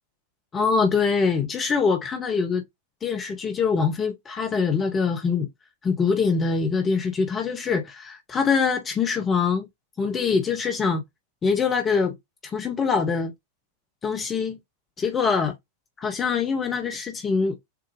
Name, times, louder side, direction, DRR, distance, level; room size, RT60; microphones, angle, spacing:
voice 1, 0.5-2.6 3.0-5.5 5.8-9.7 10.0-11.0 11.4-12.1 12.4-13.3 14.0-14.6 15.0-15.5 16.0-17.6, left 5 dB, 20° left, 0.8 m, -24 dB
6.8 x 2.3 x 3.0 m
figure-of-eight pair, 90°, 0 cm